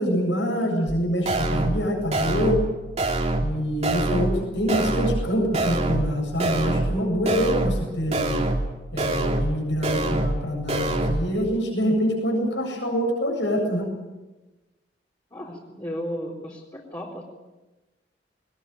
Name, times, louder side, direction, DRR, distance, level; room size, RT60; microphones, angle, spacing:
voice 1, 0.0-2.6 3.4-8.4 8.9-13.9, equal, 80° left, 1 dB, 8.0 m, -25 dB
sound 1, 0.9-1.0 1.3-1.8 2.1-2.7 3.0-3.5 3.8-4.4 4.7-5.3 5.5-6.1 6.4-7.0 7.3-7.8 8.1-8.7 9.0-9.5 9.8-10.4 10.7-11.2, right 2 dB, 40° right, 2.9 m, -25 dB
voice 2, 15.3-17.2, equal, 25° left, -3 dB, 4.1 m, -34 dB
21.5 x 20.5 x 9.3 m, 1.1 s
head